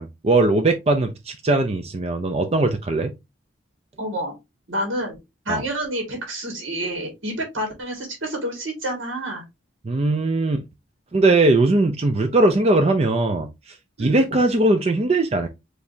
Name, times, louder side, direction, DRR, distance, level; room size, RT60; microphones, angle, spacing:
voice 1, 0.0-3.1 5.5-5.6 9.8-10.6 11.1-13.5 14.0-15.5, right 2 dB, 30° right, 0.4 m, -20 dB
voice 2, 4.0-4.3 4.7-5.2 5.5-9.4 14.0-14.3, right 1 dB, 70° right, 2.1 m, -28 dB
4.7 x 3.2 x 2.7 m
head